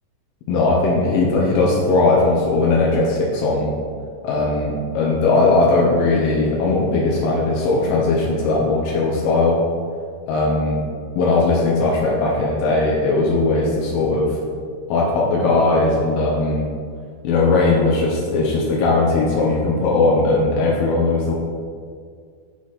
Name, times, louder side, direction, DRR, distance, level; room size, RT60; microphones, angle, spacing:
voice 1, 0.5-3.7 4.2-9.6 10.3-10.8 11.2-14.4 14.9-16.7 17.2-21.3, left 3 dB, 85° left, -4 dB, 2.6 m, -18 dB
9.4 x 3.2 x 4.2 m, 2.1 s
omnidirectional pair, 4.2 m